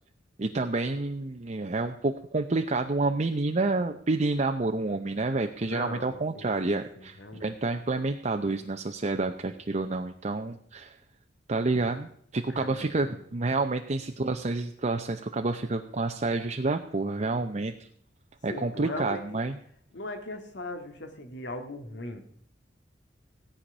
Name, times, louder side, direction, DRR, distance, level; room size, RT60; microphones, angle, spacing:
voice 1, 0.4-11.0 11.5-17.7 18.4-19.6, right 3 dB, 40° right, 5 dB, 0.7 m, -29 dB
voice 2, 5.7-7.5 12.5-13.3 18.5-19.4 19.9-22.3, left 2 dB, 75° left, 6 dB, 1.9 m, -39 dB
17.0 x 5.8 x 9.9 m, 0.65 s
head